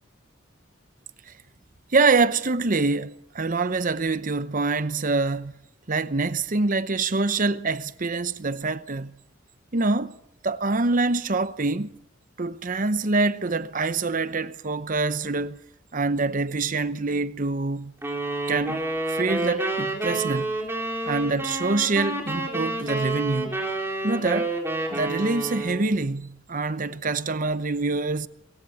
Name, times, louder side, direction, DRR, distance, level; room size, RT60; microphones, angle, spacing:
voice 1, 1.9-5.5 5.9-9.1 9.7-10.2 10.4-11.9 12.4-15.6 15.9-17.9 18.5-20.5 21.1-23.6 24.0-24.5 24.9-28.3, right 3 dB, 40° right, 0.8 m, -25 dB
sound 1, 18.0-26.0, right 2 dB, 10° right, 4.3 m, -29 dB
23.5 x 22.5 x 7.2 m
head